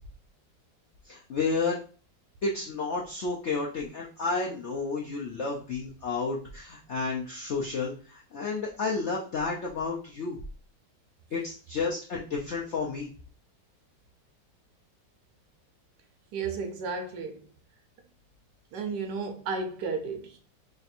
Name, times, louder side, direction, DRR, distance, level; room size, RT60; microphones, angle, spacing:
voice 1, 1.1-1.8 2.4-10.4 11.3-13.1, left 4 dB, 70° left, 0.6 m, -31 dB
voice 2, 16.3-17.5 18.7-20.4, right 4 dB, 70° right, 1.2 m, -33 dB
3.4 x 2.5 x 4.2 m
omnidirectional pair, 2.0 m